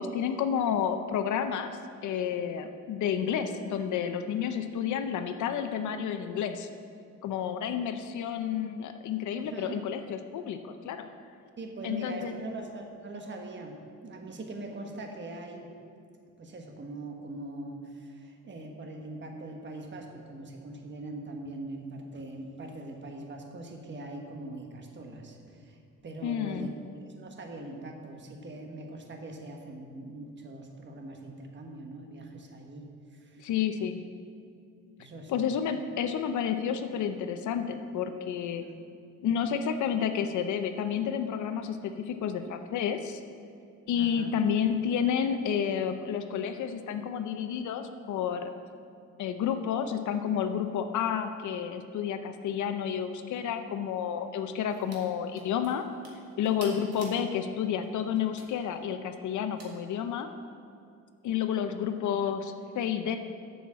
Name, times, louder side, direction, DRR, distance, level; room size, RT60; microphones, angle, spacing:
voice 1, 0.0-1.7 2.0-6.7 7.2-11.1 11.8-12.3 26.2-26.7 33.4-34.0 35.3-38.6 39.2-43.2 43.9-48.5 49.2-55.8 56.4-60.3 61.2-63.2, left 8 dB, 75° left, 8 dB, 0.7 m, -30 dB
voice 2, 9.4-9.8 11.6-15.7 16.4-26.7 27.0-33.4 35.0-35.5 38.6-38.8 44.0-44.3 56.7-56.9, right 2 dB, 40° right, 2 dB, 1.4 m, -42 dB
sound 1, 54.7-55.0 55.3-57.2 57.8-58.5 59.6-59.7, right 2 dB, 55° right, 2.1 m, -49 dB
7.2 x 7.0 x 7.5 m, 2.4 s
cardioid pair, 90°, 30 cm